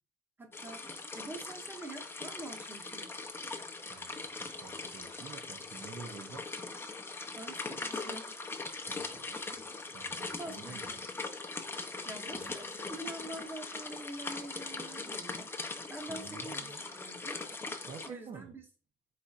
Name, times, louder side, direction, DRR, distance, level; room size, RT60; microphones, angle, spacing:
voice 1, 0.4-0.8 1.1-3.1 7.3-8.3 10.3-10.9 12.0-17.4 18.0-18.6, right 1 dB, 10° right, 0.9 m, -46 dB
sound 1, 0.5-18.1, left 3 dB, 15° left, 0.6 m, -41 dB
voice 2, 3.9-6.5 8.9-9.7 9.9-11.0 12.4-12.5 16.0-16.8 17.8-18.5, right 5 dB, 40° right, 0.6 m, -49 dB
4.3 x 4.1 x 2.4 m
cardioid pair, 110°, 17 cm